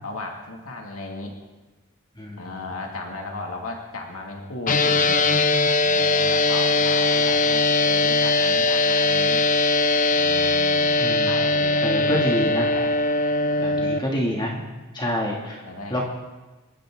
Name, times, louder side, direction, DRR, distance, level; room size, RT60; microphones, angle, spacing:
voice 1, 0.0-1.3 2.4-5.3 5.8-9.4 10.1-12.9 13.5-14.0 15.6-16.1, left 2 dB, 85° left, 0 dB, 2.4 m, -35 dB
voice 2, 2.2-2.5 7.2-7.3 11.0-11.3 11.8-12.7 13.6-14.7 14.9-15.6 15.9-16.1, left 1 dB, 20° left, -2 dB, 2.5 m, -27 dB
sound 1, 4.7-14.0, left 2 dB, 40° left, 1.0 m, -20 dB
27.5 x 13.5 x 3.9 m, 1.2 s
head